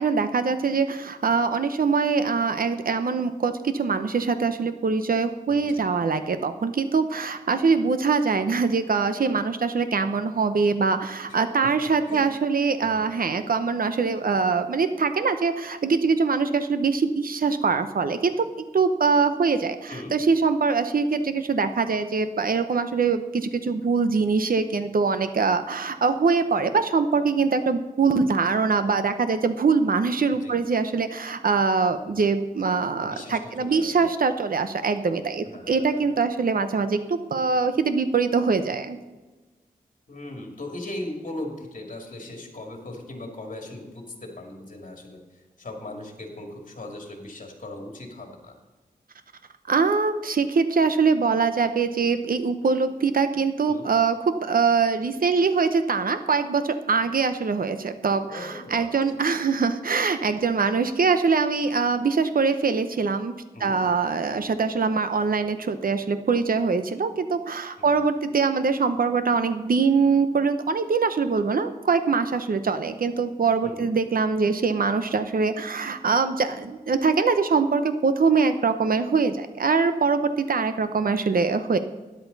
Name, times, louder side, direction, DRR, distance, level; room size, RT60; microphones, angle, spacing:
voice 1, 0.0-18.3 18.7-39.0 49.7-54.2 54.4-63.3 63.6-81.8, right 4 dB, 65° right, 10 dB, 0.8 m, -23 dB
voice 2, 5.5-5.9 11.3-11.7 12.1-12.3 12.8-13.2 19.9-20.1 30.4-30.6 33.0-34.1 35.5-36.1 40.1-45.2 45.6-48.6 53.7-53.9 58.3-58.9 63.5-63.8 67.8-68.0 73.6-73.9, left 1 dB, 55° left, 2 dB, 2.5 m, -38 dB
13.0 x 10.5 x 4.1 m, 1.2 s
wide cardioid pair, 100°, 16 cm